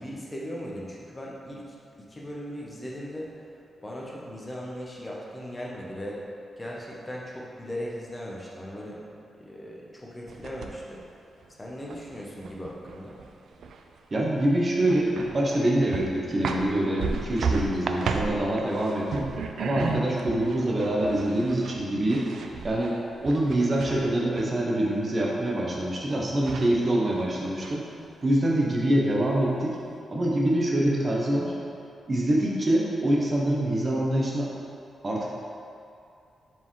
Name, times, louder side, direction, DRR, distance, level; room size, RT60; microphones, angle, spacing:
voice 1, 0.0-3.3 3.8-6.2 6.6-9.0 9.4-11.0 11.6-13.2, equal, 15° left, -4 dB, 0.7 m, -38 dB
sound 1, 10.3-11.0 11.4-14.0 14.3-14.4 14.8-15.6 15.9-24.5 26.0-26.1 26.4-27.2 27.6-28.3, right 4 dB, 65° right, 0.3 m, -34 dB
voice 2, 14.1-19.3 19.6-22.2 22.6-27.9 28.2-29.8 30.1-31.5 32.1-34.5 35.0-35.3, right 1 dB, 25° right, -3 dB, 0.8 m, -25 dB
7.0 x 4.5 x 3.1 m, 2.5 s
wide cardioid pair, 175°, 0 cm